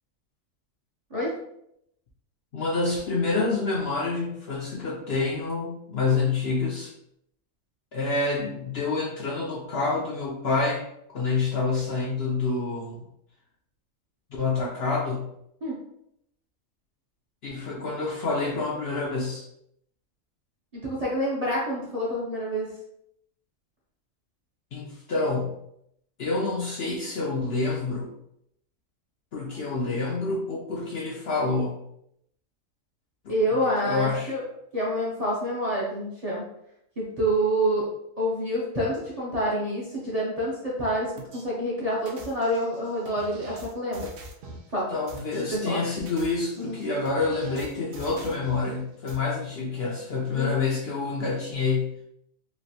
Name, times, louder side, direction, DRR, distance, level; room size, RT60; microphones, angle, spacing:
voice 1, 2.5-6.9 7.9-10.8 11.1-13.0 14.3-15.3 17.4-19.4 24.7-25.6 26.2-28.1 29.3-31.7 33.2-33.3 33.8-34.3 44.9-51.9, left 3 dB, 60° left, -3 dB, 0.7 m, -27 dB
voice 2, 20.7-22.7 33.3-34.4 34.7-36.4 37.0-37.9 38.2-44.1 44.7-44.9 45.5-45.8 46.6-46.8 50.3-50.6, equal, 35° right, -7 dB, 0.7 m, -27 dB
sound 1, 41.2-41.4 42.1-44.7 45.1-45.4 45.9-48.7 49.1-49.2, right 2 dB, 80° right, 1.0 m, -44 dB
3.1 x 2.5 x 2.7 m, 0.76 s
omnidirectional pair, 1.4 m